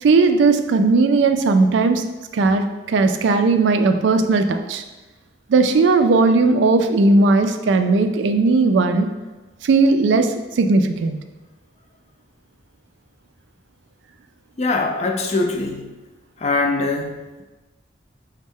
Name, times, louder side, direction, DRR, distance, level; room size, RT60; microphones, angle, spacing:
voice 1, 0.0-2.1 2.3-4.8 5.5-9.1 9.6-11.2, right 3 dB, 65° right, 8 dB, 0.3 m, -17 dB
voice 2, 14.6-15.9 16.4-17.4, left 3 dB, 35° left, 3 dB, 0.4 m, -22 dB
5.1 x 2.1 x 3.5 m, 1.2 s
head